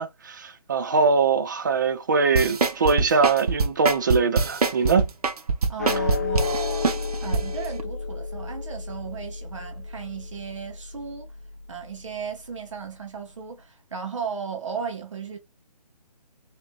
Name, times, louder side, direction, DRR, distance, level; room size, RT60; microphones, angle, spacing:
voice 1, 0.0-5.1, right 5 dB, 30° right, 0.5 m, -22 dB
sound 1, 2.3-7.4 7.8-7.9, right 4 dB, 65° right, 1.0 m, -23 dB
voice 2, 5.7-7.0 7.2-11.3 11.7-15.4, right 6 dB, 45° right, 1.2 m, -35 dB
sound 2, 5.8-12.3, left 5 dB, 25° left, 0.4 m, -32 dB
4.7 x 3.1 x 2.3 m
figure-of-eight pair, 155°, 21 cm